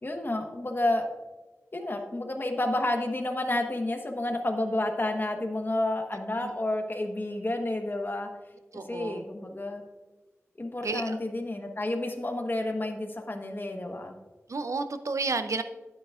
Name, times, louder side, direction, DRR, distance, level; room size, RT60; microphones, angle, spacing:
voice 1, 0.0-1.0 1.7-8.3 8.7-9.8 10.6-14.1, left 1 dB, 45° left, 4 dB, 1.2 m, -30 dB
voice 2, 8.7-9.2 10.8-11.2 14.5-15.6, right 3 dB, 80° right, 10 dB, 0.5 m, -31 dB
11.5 x 9.2 x 2.4 m, 1.2 s
wide cardioid pair, 55°, 5 cm